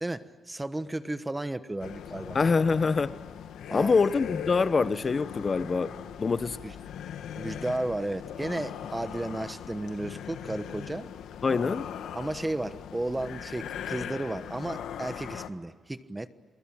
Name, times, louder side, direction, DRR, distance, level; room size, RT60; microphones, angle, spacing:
voice 1, 0.0-2.4 3.7-4.3 6.6-6.8 7.3-11.1 12.1-16.3, right 2 dB, 15° right, 1.2 m, -34 dB
sound 1, 1.8-15.5, left 9 dB, 90° left, 1.5 m, -40 dB
voice 2, 2.3-3.2 3.7-6.6 11.4-11.9, left 4 dB, 35° left, 0.8 m, -25 dB
28.5 x 22.5 x 8.8 m
cardioid pair, 105°, 0 cm